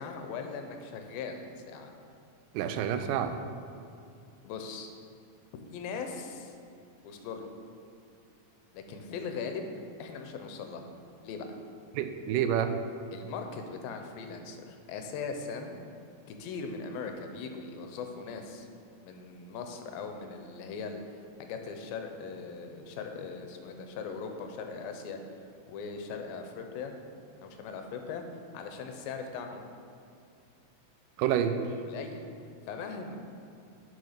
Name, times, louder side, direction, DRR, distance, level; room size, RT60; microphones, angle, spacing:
voice 1, 0.0-1.9 4.4-4.9 5.7-6.6 7.0-7.5 8.7-9.7 10.0-10.9 11.2-11.5 13.1-15.8 16.3-18.7 19.0-21.0 21.4-25.2 25.7-27.0 27.4-28.2 28.5-29.6 31.8-32.2 32.7-33.2, left 5 dB, 80° left, 5 dB, 2.5 m, -39 dB
voice 2, 2.5-3.4 11.9-12.7 31.2-31.6, right 9 dB, 80° right, 8 dB, 2.0 m, -28 dB
6.6 x 6.5 x 5.7 m, 2.5 s
omnidirectional pair, 4.2 m